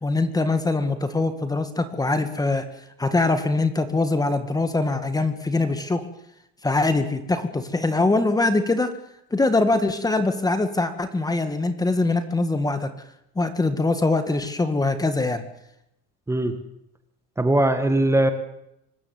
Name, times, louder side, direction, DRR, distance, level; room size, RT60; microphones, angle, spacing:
voice 1, 0.0-2.7 3.0-6.0 6.6-8.9 9.3-12.9 13.4-15.4, left 2 dB, 10° left, 9 dB, 1.8 m, -23 dB
voice 2, 17.4-18.3, right 1 dB, 10° right, 8 dB, 1.8 m, -20 dB
25.0 x 14.5 x 9.4 m, 0.82 s
cardioid pair, 135°, 31 cm